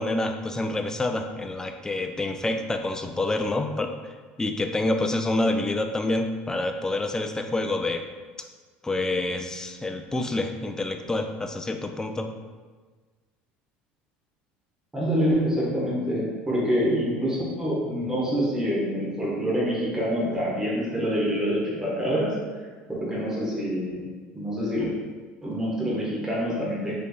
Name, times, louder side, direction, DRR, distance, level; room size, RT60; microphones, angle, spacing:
voice 1, 0.0-4.1 4.4-8.0 8.8-12.3, left 2 dB, 10° left, 5 dB, 0.3 m, -27 dB
voice 2, 14.9-22.3 22.9-24.0 24.3-24.8 25.4-26.9, equal, 10° right, -6 dB, 1.1 m, -26 dB
3.8 x 3.3 x 2.3 m, 1.4 s
supercardioid pair, 90°, 5 cm